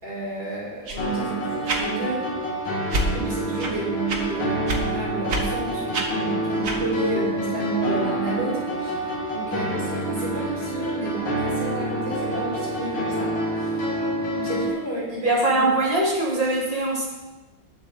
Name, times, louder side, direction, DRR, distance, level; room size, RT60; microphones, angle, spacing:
voice 1, 0.0-2.3 3.1-13.3 13.6-13.7 14.3-15.7, right 2 dB, 70° right, -7 dB, 5.9 m, -31 dB
sound 1, 0.9-1.0 1.6-1.8 2.9-3.1 3.6-3.7 4.1-4.2 4.7-4.8 5.3-5.4 5.9-6.1 6.6-6.8, right 1 dB, 45° right, 1.8 m, -26 dB
sound 2, 1.0-14.7, right 1 dB, 80° left, 2.9 m, -27 dB
voice 2, 15.2-17.1, right 2 dB, 20° left, -3 dB, 1.8 m, -22 dB
19.5 x 7.4 x 4.0 m, 1.1 s
omnidirectional pair, 2.1 m